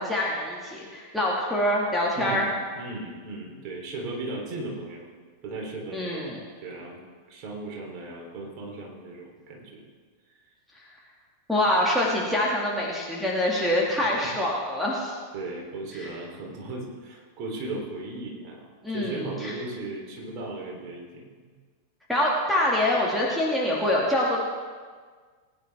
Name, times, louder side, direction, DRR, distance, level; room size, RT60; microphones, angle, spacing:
voice 1, 0.0-2.5 5.9-6.4 11.5-15.1 15.9-16.1 18.8-19.5 22.1-24.4, left 1 dB, ahead, -5 dB, 2.3 m, -25 dB
voice 2, 2.2-5.1 5.4-7.0 7.3-9.8 14.0-14.1 15.3-21.2, right 2 dB, 40° right, -2 dB, 3.6 m, -36 dB
20.5 x 10.0 x 3.6 m, 1.6 s
figure-of-eight pair, 90°, 0 cm